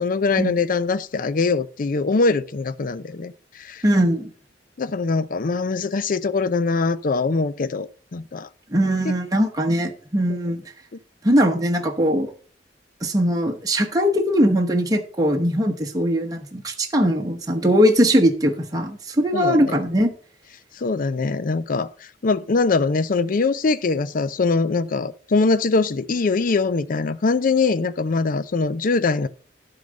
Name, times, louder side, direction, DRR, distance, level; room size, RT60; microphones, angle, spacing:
voice 1, 0.0-3.8 4.8-8.5 9.0-9.1 10.3-10.4 19.3-19.8 20.7-29.3, left 4 dB, 50° left, 0.5 m, -22 dB
voice 2, 3.8-4.3 8.7-10.6 11.2-12.3 13.0-20.1, equal, 20° right, 1.0 m, -20 dB
12.0 x 3.9 x 6.3 m
head